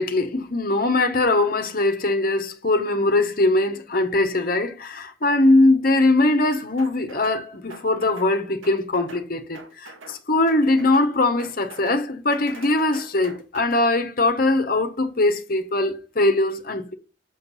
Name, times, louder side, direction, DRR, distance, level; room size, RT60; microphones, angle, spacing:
voice 1, 0.0-16.9, left 2 dB, 45° left, 1.0 m, -21 dB
sound 1, 6.8-7.4 7.7-8.3 8.6-9.3 9.5-10.2 10.5-11.1 11.4-12.0 12.3-13.9, right 3 dB, 80° right, 1.7 m, -43 dB
6.6 x 6.4 x 4.2 m
head